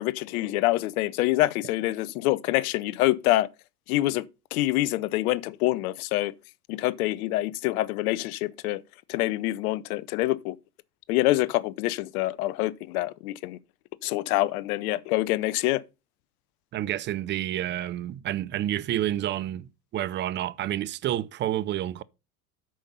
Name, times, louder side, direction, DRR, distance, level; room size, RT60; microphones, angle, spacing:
voice 1, 0.0-3.5 3.9-4.2 4.5-6.3 6.7-8.8 9.1-10.6 11.1-13.6 14.0-15.8, left 17 dB, 65° left, 0.7 m, -26 dB
voice 2, 16.7-22.0, right 12 dB, 25° right, 0.4 m, -29 dB
8.8 x 5.2 x 5.5 m
hypercardioid pair, 85°, 46 cm